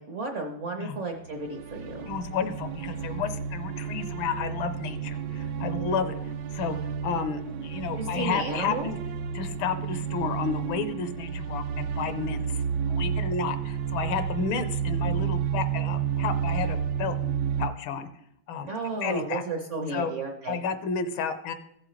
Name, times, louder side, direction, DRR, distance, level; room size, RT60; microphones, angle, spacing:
voice 1, 0.0-2.1 5.8-6.1 8.0-8.9 18.7-20.6, right 3 dB, 55° right, 3 dB, 0.8 m, -33 dB
sound 1, 1.2-17.7, right 7 dB, 75° right, 1.1 m, -31 dB
voice 2, 2.1-6.1 6.5-6.8 7.0-9.0 9.3-17.2 17.6-18.1 18.5-18.7 19.0-19.4 19.9-20.1 20.5-21.5, left 6 dB, 80° left, 10 dB, 1.5 m, -31 dB
15.0 x 7.5 x 3.2 m, 0.76 s
omnidirectional pair, 2.3 m